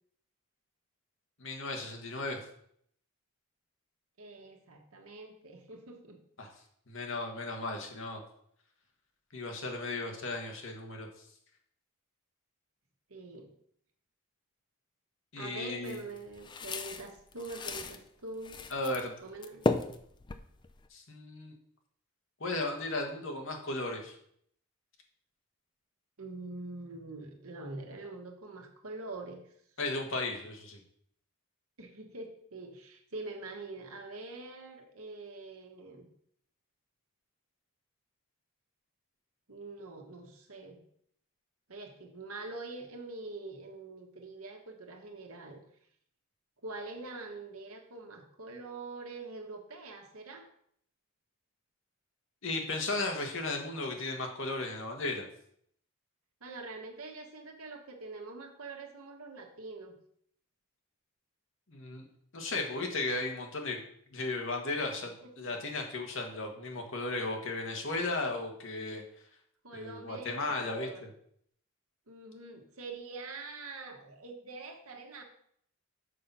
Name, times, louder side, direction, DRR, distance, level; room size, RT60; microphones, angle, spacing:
voice 1, 1.4-2.5 6.4-6.5 6.9-8.2 9.3-11.1 15.3-16.0 18.7-19.1 20.9-21.5 22.4-24.1 29.8-30.8 52.4-55.3 61.7-62.0 62.3-63.8 64.1-69.0 69.7-70.9, left 2 dB, 60° left, 2 dB, 1.5 m, -35 dB
voice 2, 4.2-6.2 13.1-13.5 15.4-18.6 19.2-19.7 26.2-29.5 31.8-36.1 39.5-40.8 41.7-45.6 46.6-50.5 56.4-60.0 65.2-65.5 69.6-71.0 72.1-75.2, right 3 dB, 75° right, 3 dB, 1.4 m, -44 dB
sound 1, 15.8-18.0 18.4-19.1 19.3-20.9, left 3 dB, 20° left, 0.4 m, -35 dB
6.6 x 5.9 x 5.4 m, 0.67 s
head